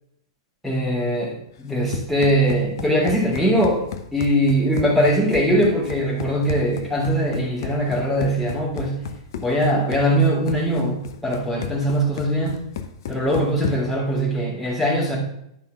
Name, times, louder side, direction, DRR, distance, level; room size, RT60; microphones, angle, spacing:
voice 1, 0.6-3.8 4.1-8.9 9.4-12.6 13.1-15.2, equal, ahead, -5 dB, 3.3 m, -21 dB
Run, 1.6-14.0, left 8 dB, 55° left, 0.9 m, -34 dB
10.5 x 5.6 x 5.3 m, 0.77 s
figure-of-eight pair, 100°, 2 cm